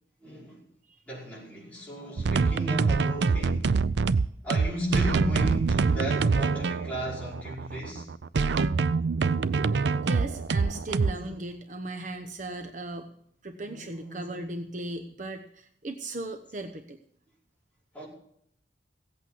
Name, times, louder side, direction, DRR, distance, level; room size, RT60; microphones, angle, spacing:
voice 1, 0.2-0.6 1.1-3.8 4.4-8.1 11.0-11.3 13.6-14.4 17.9-18.1, equal, 10° left, 5.2 m, -35 dB
sound 1, 2.2-11.1, right 4 dB, 75° right, 0.5 m, -25 dB
voice 2, 10.0-13.1 13.4-17.0, right 2 dB, 45° right, 0.9 m, -37 dB
16.5 x 8.4 x 6.2 m
head